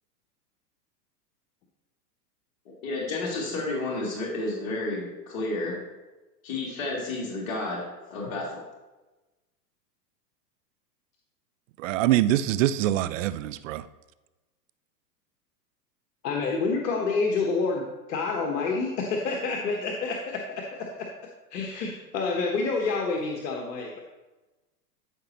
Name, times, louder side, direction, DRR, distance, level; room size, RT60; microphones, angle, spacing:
voice 1, 2.8-5.8 6.4-7.8 8.1-8.5, left 2 dB, 55° left, 2.7 m, -31 dB
voice 2, 11.8-13.8, right 13 dB, 50° right, 0.5 m, -24 dB
voice 3, 16.2-21.1 21.5-24.0, left 4 dB, 75° left, 1.3 m, -28 dB
13.0 x 5.0 x 3.0 m
hypercardioid pair, 125°, 50 cm